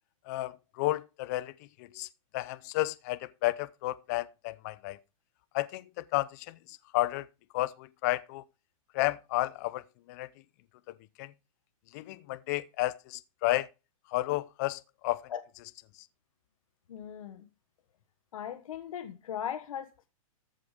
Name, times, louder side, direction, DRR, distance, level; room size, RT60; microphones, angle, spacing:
voice 1, 0.3-1.5 1.8-2.1 2.3-5.0 5.5-7.3 7.5-8.4 8.9-9.8 10.1-10.3 11.2-11.3 11.9-13.7 14.1-15.3 15.6-15.7, left 18 dB, 30° left, 0.5 m, -32 dB
voice 2, 16.9-17.5 18.3-20.1, left 9 dB, 70° left, 1.3 m, -38 dB
14.0 x 5.7 x 4.8 m
hypercardioid pair, 160°, 18 cm